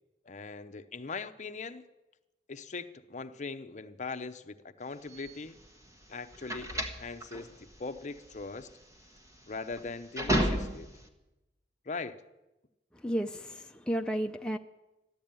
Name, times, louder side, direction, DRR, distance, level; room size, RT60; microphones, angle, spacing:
voice 1, 0.2-1.9 2.5-5.6 6.1-8.7 9.5-10.9 11.9-12.2, left 4 dB, 45° left, 10 dB, 0.7 m, -40 dB
sound 1, 5.1-11.1, right 1 dB, 20° right, 1.5 m, -33 dB
voice 2, 13.0-14.6, equal, 5° left, 3 dB, 0.5 m, -32 dB
14.0 x 11.0 x 8.9 m, 1.0 s
head